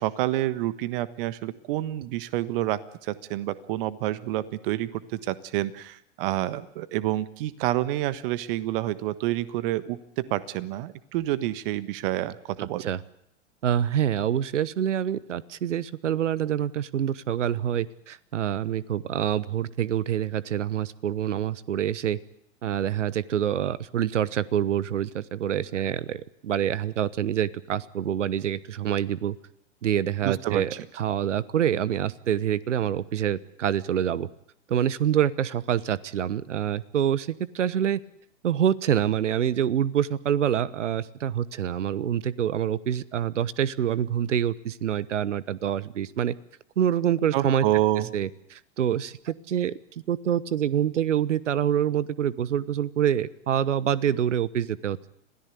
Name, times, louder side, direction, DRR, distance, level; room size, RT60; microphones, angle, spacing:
voice 1, 0.0-12.9 30.2-30.6 47.3-48.1, right 15 dB, 45° right, 15 dB, 1.4 m, -28 dB
voice 2, 12.6-13.0 13.6-22.2 22.6-29.4 29.8-34.3 34.7-38.0 38.4-46.3 46.8-47.7 48.1-49.7 50.1-55.1, right 10 dB, 70° right, 20 dB, 1.1 m, -26 dB
26.5 x 17.0 x 8.4 m, 0.74 s
figure-of-eight pair, 105°, 37 cm